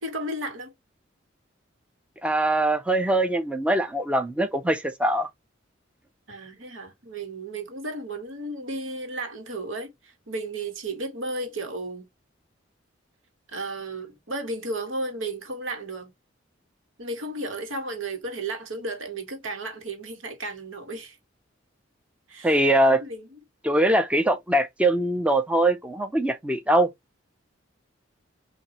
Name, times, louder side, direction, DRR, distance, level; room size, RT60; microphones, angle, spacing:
voice 1, 0.0-0.7 6.3-12.1 13.5-16.1 17.0-21.2 22.3-22.7 23.0-23.4, right 2 dB, 85° right, 1.5 m, -34 dB
voice 2, 2.2-5.3 22.4-23.0 23.6-26.9, right 1 dB, 5° right, 0.5 m, -22 dB
6.1 x 2.6 x 2.9 m
head